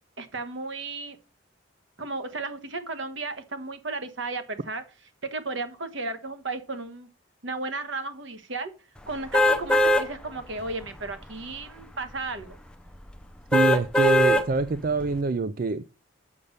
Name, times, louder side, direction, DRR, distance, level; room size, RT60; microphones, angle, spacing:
voice 1, 0.2-1.2 2.0-4.8 5.2-7.1 7.4-8.7 9.1-12.6, right 3 dB, 65° right, 10 dB, 1.4 m, -34 dB
sound 1, 9.3-10.0 10.6-10.7 13.5-14.4 15.0-15.1, equal, 5° left, 0.6 m, -20 dB
voice 2, 13.5-15.8, right 2 dB, 45° right, 13 dB, 0.4 m, -25 dB
7.1 x 6.7 x 6.5 m, 0.33 s
head